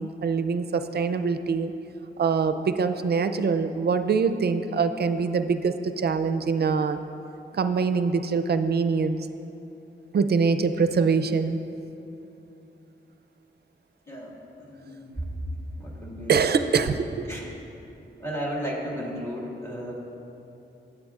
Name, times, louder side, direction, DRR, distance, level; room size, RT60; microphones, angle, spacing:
voice 1, 0.0-1.7 2.2-7.0 7.5-9.2 10.1-11.6 16.3-17.3, right 5 dB, 60° right, 10 dB, 0.4 m, -24 dB
voice 2, 14.1-15.2 15.8-16.4 17.3-17.5 18.2-19.9, equal, 15° left, -3 dB, 1.8 m, -34 dB
15.0 x 8.7 x 2.4 m, 2.9 s
wide cardioid pair, 115°, 19 cm